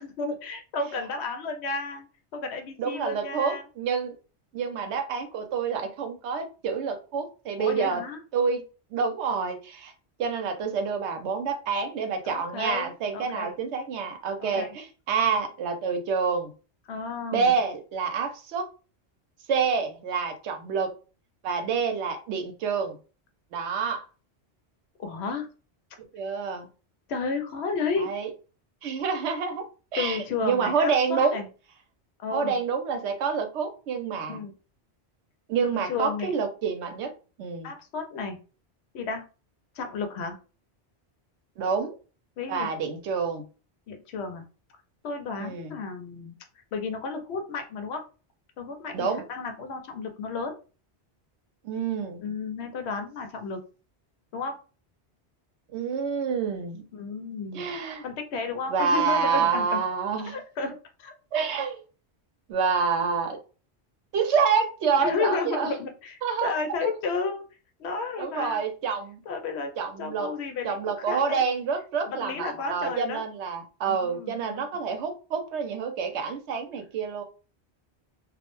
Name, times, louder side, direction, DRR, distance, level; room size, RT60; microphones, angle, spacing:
voice 1, 0.0-2.1 2.3-3.6 7.6-8.2 12.2-13.5 14.4-14.7 16.9-17.6 25.0-25.5 27.1-28.1 30.0-31.5 32.2-32.6 34.3-34.5 35.6-36.3 37.6-38.4 38.9-39.3 39.8-40.4 42.4-42.7 43.9-44.4 45.0-46.4 46.7-48.0 48.6-50.6 52.2-53.6 54.3-54.6 56.9-57.8 58.0-59.8 60.2-61.1 65.0-67.4 67.8-68.6 69.3-69.7 70.0-71.4 72.0-73.2 73.8-74.6, left 4 dB, 75° left, 5 dB, 0.8 m, -32 dB
voice 2, 2.8-4.1 4.5-8.0 8.3-8.6 8.9-9.9 10.2-16.5 17.3-18.7 19.5-20.9 21.4-23.0 23.5-24.0 26.1-26.7 28.0-28.3 28.8-29.6 29.9-31.4 32.3-34.4 35.5-37.1 37.4-37.7 41.6-42.0 42.5-43.5 45.4-45.7 48.9-49.3 51.6-52.2 55.7-56.8 57.5-58.0 58.7-60.4 61.3-61.8 62.5-63.4 64.1-65.7 66.2-66.5 66.8-66.9 68.2-69.2 69.8-70.3 70.6-77.2, right 6 dB, 80° right, 5 dB, 0.9 m, -27 dB
2.3 x 2.0 x 2.9 m, 0.34 s
omnidirectional pair, 1.1 m